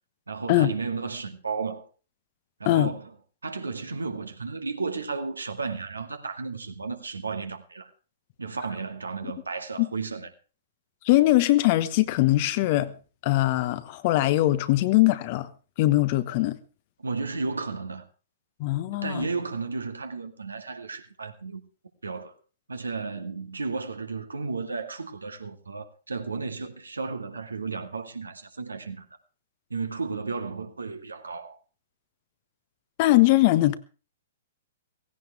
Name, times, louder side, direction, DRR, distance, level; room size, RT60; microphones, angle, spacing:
voice 1, 0.3-1.9 2.6-3.1 3.4-7.9 8.4-10.3 17.0-18.1 18.9-21.6 22.0-22.3 22.7-29.1 29.7-31.6, right 4 dB, 75° right, 2.2 m, -33 dB
voice 2, 11.0-12.9 13.2-15.5 15.8-16.6 18.6-19.3 33.0-33.7, left 16 dB, 40° left, 1.2 m, -21 dB
17.5 x 16.5 x 3.5 m
figure-of-eight pair, 115°, 0 cm